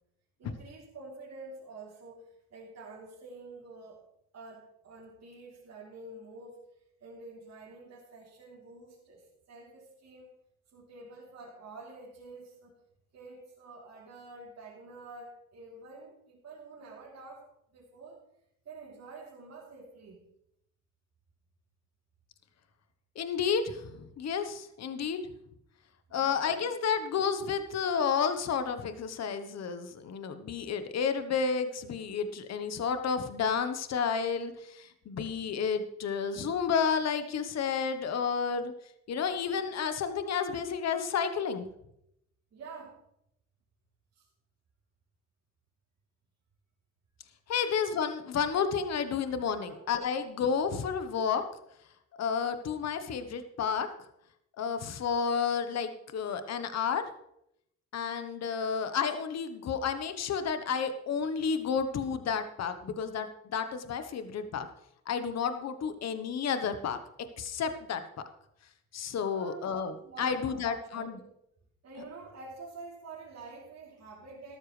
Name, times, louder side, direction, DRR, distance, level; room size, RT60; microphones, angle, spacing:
voice 1, 0.4-4.0 4.3-6.7 7.0-10.3 10.7-12.7 13.1-17.4 17.7-18.2 18.6-20.2 26.1-26.4 39.1-39.4 42.5-43.0 44.1-44.2 47.6-47.7 49.6-49.8 69.3-69.6 70.0-71.3 71.8-74.6, right 3 dB, 60° right, -5 dB, 3.4 m, -48 dB
voice 2, 23.1-25.3 26.1-38.7 39.1-41.7 47.5-51.4 52.2-53.9 54.6-57.0 57.9-64.7 65.1-67.0 67.4-68.0 68.9-71.2, left 6 dB, 60° left, 9 dB, 1.2 m, -31 dB
13.0 x 13.0 x 3.3 m, 0.77 s
cardioid pair, 90°, 30 cm